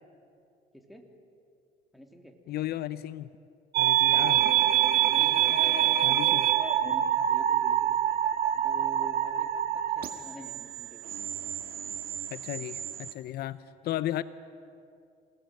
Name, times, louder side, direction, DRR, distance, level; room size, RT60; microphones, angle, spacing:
voice 1, 1.9-2.3 4.2-4.6 5.1-7.9 8.5-9.5 10.0-11.1, equal, ahead, 3 dB, 3.2 m, -45 dB
voice 2, 2.5-3.3 3.8-4.4 6.0-6.5 12.3-13.6 13.8-14.2, left 14 dB, 70° left, 15 dB, 0.7 m, -34 dB
sound 1, 3.7-13.1, right 11 dB, 65° right, 1.8 m, -26 dB
27.5 x 19.0 x 9.0 m, 2.5 s
cardioid pair, 110°, 17 cm